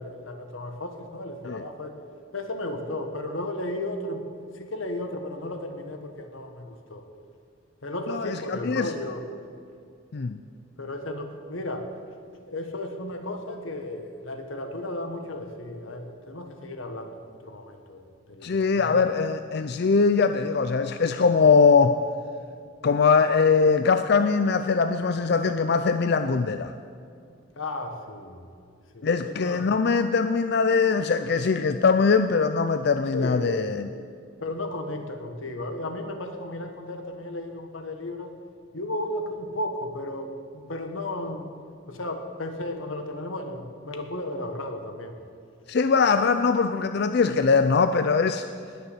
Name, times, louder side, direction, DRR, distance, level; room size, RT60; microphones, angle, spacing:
voice 1, 0.0-1.9 2.3-7.0 7.8-9.2 10.8-11.9 12.5-19.0 27.6-28.5 28.9-29.7 33.1-33.5 34.4-38.3 38.7-41.5 41.9-45.2, left 1 dB, 90° left, 6 dB, 1.6 m, -34 dB
voice 2, 8.1-8.9 10.1-10.4 18.4-22.0 22.8-26.7 29.0-33.9 45.7-48.5, left 5 dB, 55° left, 9 dB, 0.5 m, -22 dB
20.0 x 7.0 x 8.0 m, 2.3 s
head